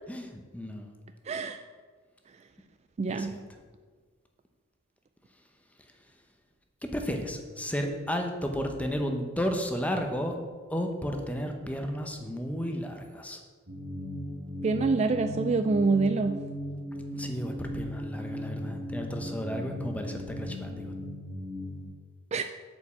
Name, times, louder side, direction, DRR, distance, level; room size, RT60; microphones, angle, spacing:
voice 1, 0.1-0.9 3.1-3.6 6.0-6.1 6.8-10.4 10.7-13.4 17.1-20.9, equal, 5° left, 4 dB, 0.9 m, -33 dB
voice 2, 1.3-1.6 3.0-3.3 14.6-16.3 22.3-22.5, right 4 dB, 30° right, 9 dB, 0.3 m, -26 dB
sound 1, 13.7-21.8, equal, 65° right, 2.3 m, -37 dB
8.3 x 5.3 x 7.3 m, 1.5 s
head